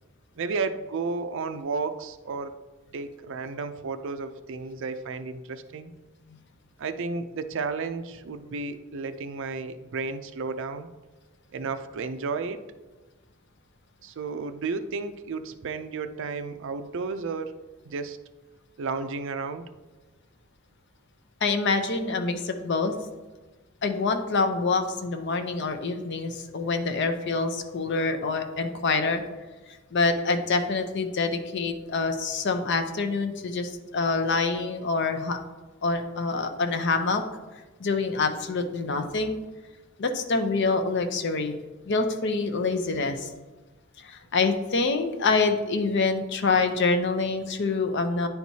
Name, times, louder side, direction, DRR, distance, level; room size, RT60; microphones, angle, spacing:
voice 1, 0.4-2.5 2.9-5.9 6.8-10.9 11.5-12.6 14.0-17.5 17.8-18.2 18.8-19.7, right 4 dB, 65° right, 10 dB, 0.4 m, -32 dB
voice 2, 21.4-22.9 23.8-29.2 29.9-35.4 35.8-37.2 37.8-39.4 40.0-41.6 41.9-43.3 44.0-48.3, left 3 dB, 60° left, 7 dB, 0.6 m, -26 dB
10.0 x 4.5 x 2.7 m, 1.2 s
head